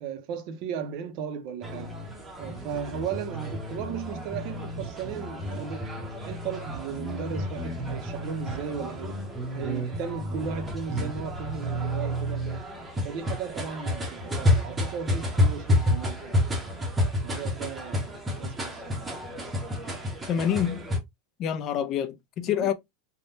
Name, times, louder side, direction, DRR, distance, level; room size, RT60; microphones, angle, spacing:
voice 1, 0.0-1.9 2.4-5.8 6.3-9.3 9.5-12.7 13.0-16.9 17.2-19.1 22.5-22.7, right 7 dB, 45° right, 0.5 m, -36 dB
sound 1, 1.6-21.0, left 1 dB, 10° right, 0.7 m, -30 dB
voice 2, 20.3-20.9 21.4-22.7, left 9 dB, 35° left, 0.4 m, -27 dB
3.4 x 2.1 x 2.6 m
supercardioid pair, 160°, 0 cm